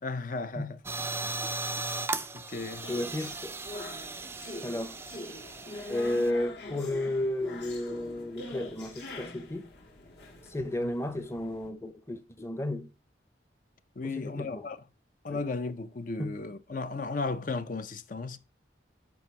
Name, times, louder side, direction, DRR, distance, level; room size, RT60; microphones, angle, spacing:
voice 1, 0.0-0.8 1.2-1.4 2.3-2.9 10.8-10.9 14.0-14.8 15.2-18.4, left 3 dB, 45° left, 0.6 m, -35 dB
sound 1, 0.9-6.3, right 3 dB, 15° right, 0.3 m, -37 dB
sound 2, 2.5-11.7, left 2 dB, 65° left, 1.8 m, -44 dB
voice 2, 2.9-3.6 4.6-5.0 5.9-9.7 10.5-12.9 14.0-14.7 15.3-15.4 16.2-16.4, left 1 dB, 15° left, 0.7 m, -33 dB
7.1 x 5.1 x 4.6 m
head